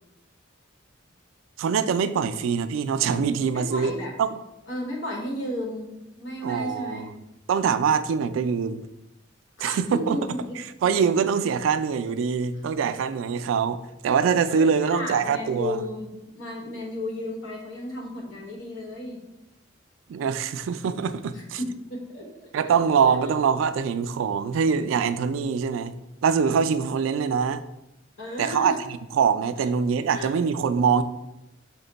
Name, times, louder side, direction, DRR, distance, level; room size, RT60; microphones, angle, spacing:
voice 1, 1.6-3.9 4.2-4.3 6.4-7.1 7.5-8.9 9.6-10.2 10.8-15.8 20.1-21.6 22.5-26.0 26.2-27.6 28.4-28.7 29.1-31.0, right 6 dB, 85° right, 12 dB, 0.3 m, -24 dB
voice 2, 3.5-4.1 4.7-7.1 9.6-10.6 10.9-11.3 14.5-19.2 21.3-22.7 28.2-28.8 29.6-29.7 30.1-30.4, left 1 dB, 85° left, -1 dB, 1.2 m, -34 dB
5.7 x 2.2 x 3.9 m, 0.92 s
head